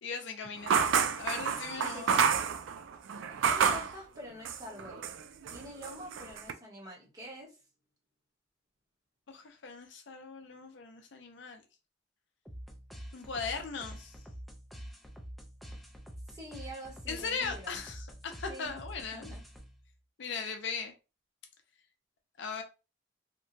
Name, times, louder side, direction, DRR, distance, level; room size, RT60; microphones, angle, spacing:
voice 1, 0.0-2.1 9.3-11.6 13.1-14.2 17.1-19.3 20.2-20.9 22.4-22.6, left 5 dB, 65° left, 0.5 m, -39 dB
sound 1, 0.7-3.9 4.4-5.2 5.5-6.5, right 6 dB, 75° right, 0.3 m, -29 dB
voice 2, 1.8-2.4 3.1-5.1 5.5-7.5 16.3-17.8 18.5-18.8 19.1-19.4, equal, 20° right, 0.9 m, -46 dB
sound 2, 12.5-19.9, equal, ahead, 0.3 m, -47 dB
2.9 x 2.2 x 2.6 m
head